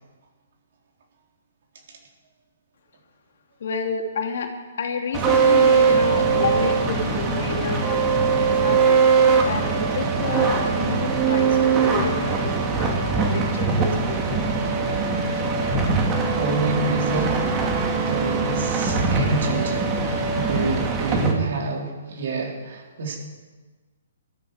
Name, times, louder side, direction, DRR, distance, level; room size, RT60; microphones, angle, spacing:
voice 1, 3.6-4.5 4.8-8.0 8.4-9.0 9.4-14.4, left 4 dB, 60° left, 4 dB, 2.4 m, -30 dB
sound 1, 5.1-21.3, right 4 dB, 25° right, 2.7 m, -21 dB
voice 2, 16.2-17.5 17.9-23.2, right 3 dB, 60° right, 0 dB, 4.2 m, -28 dB
20.5 x 13.5 x 4.9 m, 1.3 s
hypercardioid pair, 135°, 0 cm